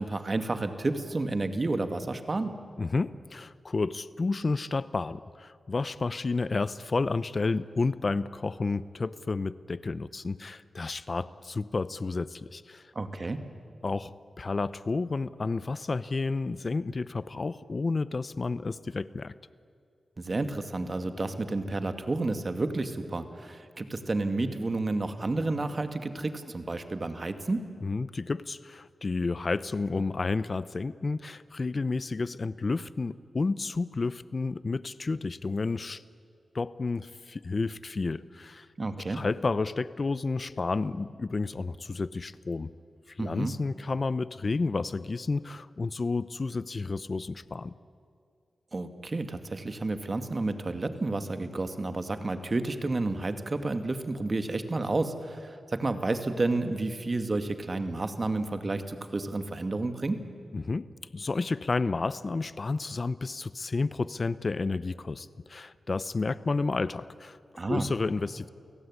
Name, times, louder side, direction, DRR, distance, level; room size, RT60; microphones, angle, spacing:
voice 1, 0.0-2.5 12.9-13.4 20.2-27.7 38.8-39.2 43.2-43.5 48.7-60.2 67.6-67.9, right 2 dB, 45° right, 8 dB, 2.3 m, -31 dB
voice 2, 2.8-12.9 13.8-19.3 27.8-36.0 36.5-38.7 39.1-42.7 43.1-47.7 60.5-60.9 61.1-67.4 67.7-68.5, left 3 dB, 50° left, 16 dB, 0.8 m, -31 dB
29.0 x 17.5 x 9.9 m, 2.3 s
cardioid pair, 50°, 0 cm